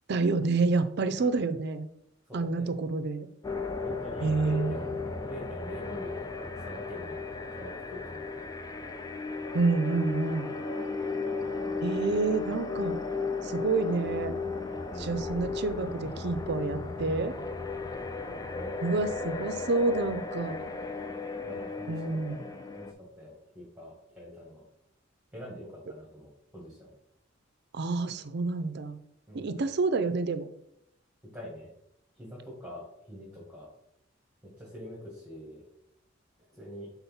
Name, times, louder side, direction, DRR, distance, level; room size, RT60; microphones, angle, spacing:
voice 1, 0.1-1.9 2.3-3.3 4.2-4.9 9.5-10.5 11.8-13.0 13.4-14.4 15.0-17.3 18.8-20.7 21.9-22.4 27.7-29.0 29.3-30.5, right 3 dB, 60° right, 10 dB, 0.5 m, -28 dB
voice 2, 1.2-1.5 2.3-2.7 3.7-4.9 5.3-8.5 10.8-10.9 14.9-15.3 18.3-19.1 21.4-22.4 22.7-24.6 25.3-26.9 29.3-29.5 31.3-31.7 32.2-33.7 34.4-35.6 36.6-36.9, left 1 dB, 5° right, -6 dB, 1.7 m, -45 dB
sound 1, 3.4-22.9, left 4 dB, 20° left, 0.4 m, -35 dB
4.3 x 4.0 x 5.6 m, 0.77 s
head